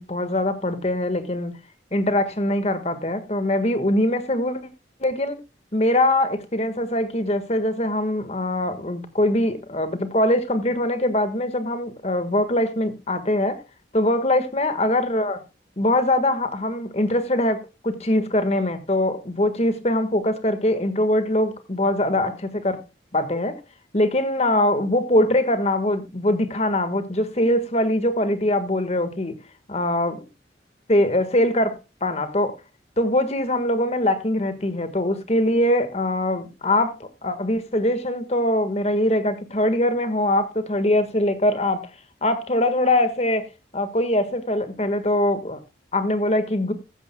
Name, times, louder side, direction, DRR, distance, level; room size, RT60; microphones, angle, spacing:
voice 1, 0.0-1.6 1.9-4.6 5.0-5.4 5.7-13.6 13.9-15.4 15.8-22.8 23.1-23.6 23.9-29.3 29.7-30.2 30.9-32.5 33.0-41.9 42.2-43.5 43.7-45.6 45.9-46.7, left 1 dB, 35° left, 1.6 m, -22 dB
15.0 x 13.5 x 2.3 m
head